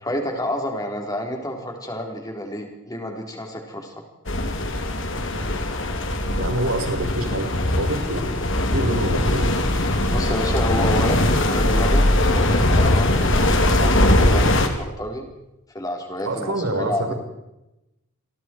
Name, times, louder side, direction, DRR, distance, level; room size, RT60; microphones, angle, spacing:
voice 1, 0.0-3.9 10.1-15.2 15.7-17.1, left 1 dB, 15° left, 2 dB, 4.2 m, -29 dB
sound 1, 4.3-14.7, left 1 dB, 60° left, 2.9 m, -20 dB
voice 2, 6.4-8.3 8.7-9.5 16.2-17.1, right 1 dB, 75° right, 4 dB, 4.5 m, -26 dB
28.5 x 22.5 x 4.7 m, 0.93 s
head